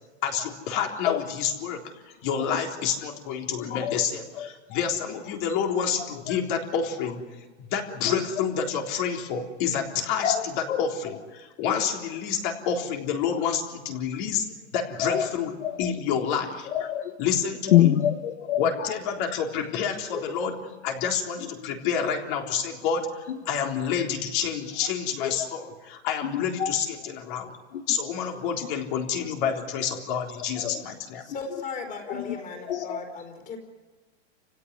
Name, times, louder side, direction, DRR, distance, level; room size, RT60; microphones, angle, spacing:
voice 1, 0.2-1.9 2.2-7.2 7.7-10.3 10.8-15.5 15.8-16.7 17.2-17.9 18.6-25.7 26.0-27.5 27.9-31.2, left 7 dB, 45° left, 2 dB, 3.8 m, -28 dB
voice 2, 0.7-1.2 2.4-2.6 3.6-4.1 4.3-4.8 5.3-5.4 5.8-6.4 7.0-7.1 8.0-8.4 10.2-10.9 11.7-11.8 15.0-15.3 15.6-15.9 16.6-17.2 17.7-19.0 20.1-20.3 21.4-21.7 23.3-23.6 25.2-25.6 26.2-27.1 27.7-28.0 28.6-28.7 30.4-30.8 32.1-33.2, left 11 dB, 70° left, 9 dB, 1.3 m, -28 dB
voice 3, 31.2-33.6, left 4 dB, 20° left, 4 dB, 4.6 m, -37 dB
29.0 x 16.5 x 9.8 m, 1.3 s
supercardioid pair, 155°, 35 cm